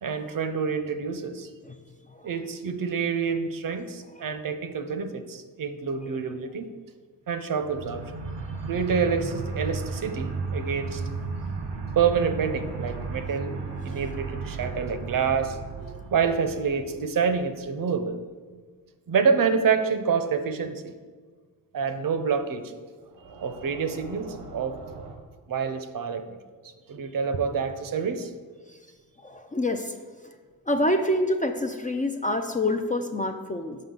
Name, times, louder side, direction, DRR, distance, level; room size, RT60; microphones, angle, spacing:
voice 1, 0.0-1.5 2.2-6.7 7.3-8.0 8.6-11.0 12.0-13.6 13.8-18.2 19.1-20.9 21.7-22.7 23.4-24.8 25.5-26.4 26.9-28.3, right 6 dB, 55° right, 9 dB, 0.6 m, -27 dB
sound 1, 7.6-17.6 23.1-25.2, right 4 dB, 90° right, 0.9 m, -35 dB
voice 2, 29.2-29.9 30.7-33.8, left 1 dB, 20° left, 6 dB, 0.4 m, -27 dB
5.6 x 5.2 x 3.8 m, 1.5 s
cardioid pair, 60°, 40 cm